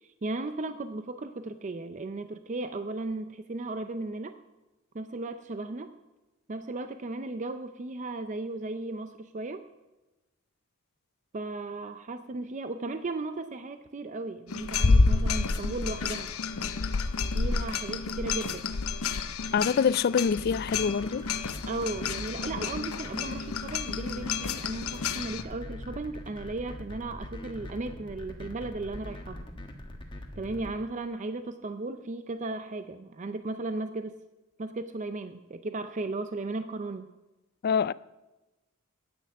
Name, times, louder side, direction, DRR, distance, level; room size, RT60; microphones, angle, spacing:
voice 1, 0.0-4.4 4.9-5.9 6.5-9.6 11.3-16.3 17.3-18.7 21.7-29.4 30.4-34.2 34.6-37.1, right 2 dB, 35° right, 0.5 m, -36 dB
sound 1, 14.5-25.4, left 4 dB, 75° left, 0.7 m, -29 dB
voice 2, 19.5-21.2 37.6-37.9, left 6 dB, 45° left, 0.3 m, -25 dB
sound 2, 20.3-30.7, left 1 dB, 25° left, 1.4 m, -42 dB
10.0 x 8.7 x 8.5 m
head